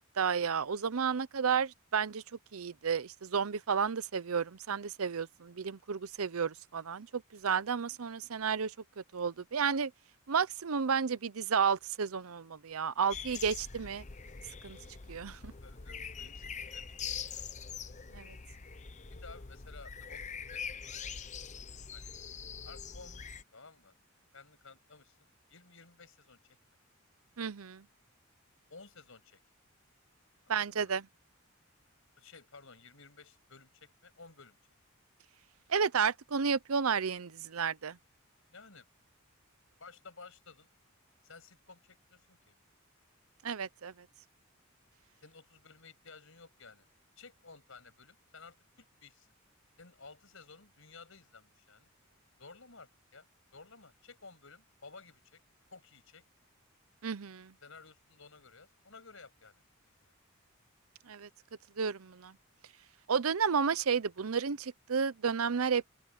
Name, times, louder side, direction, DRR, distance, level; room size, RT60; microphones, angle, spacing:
voice 1, 0.0-2.2 2.5-9.9 10.3-14.0 14.6-14.8 15.1-15.5 18.1-18.4 27.4-27.8 30.5-31.0 35.7-38.0 43.4-43.9 57.0-57.5 61.1-61.3 61.8-62.3 63.1-65.9, right 6 dB, 85° right, 0.7 m, -32 dB
sound 1, 13.1-23.4, left 6 dB, 35° left, 0.8 m, -44 dB
voice 2, 15.6-17.4 19.1-20.6 21.9-22.1 22.6-24.0 24.3-25.2 25.5-26.6 28.7-29.4 30.4-30.9 32.2-34.6 38.5-38.9 39.8-40.7 41.2-42.5 45.2-46.9 47.2-49.3 49.8-51.9 52.4-55.4 55.7-56.2 57.6-59.6 60.0-60.1, left 4 dB, 65° left, 7.0 m, -55 dB
open air
head